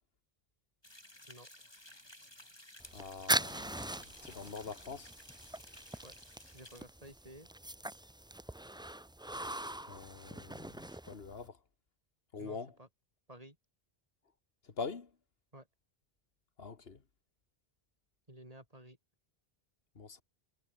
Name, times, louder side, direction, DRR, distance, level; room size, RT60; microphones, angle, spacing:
sound 1, 0.8-6.8, left 1 dB, 25° left, 4.2 m, -56 dB
sound 2, 2.8-11.5, right 1 dB, 5° right, 0.3 m, -41 dB
voice 1, 2.9-5.1 9.8-11.6 12.3-12.7 14.6-15.1 16.6-17.0 20.0-20.2, left 5 dB, 70° left, 1.9 m, -44 dB
voice 2, 6.4-7.5 12.4-12.9 13.3-13.6 15.5-15.7 18.3-19.0, right 1 dB, 35° right, 6.3 m, -53 dB
omnidirectional pair, 1.0 m